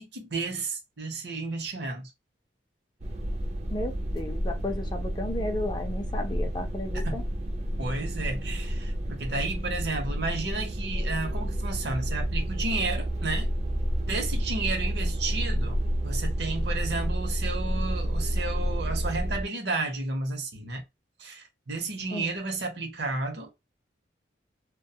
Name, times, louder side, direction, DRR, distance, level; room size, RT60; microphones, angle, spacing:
voice 1, 0.0-2.1 7.0-7.2 7.8-13.5 14.1-15.8 16.0-20.8 21.2-23.5, right 3 dB, 65° right, 0.8 m, -32 dB
sound 1, 3.0-19.4, equal, 35° right, 0.4 m, -30 dB
voice 2, 3.7-7.2 22.1-22.3, left 1 dB, 25° left, 0.4 m, -34 dB
2.3 x 2.2 x 2.7 m
head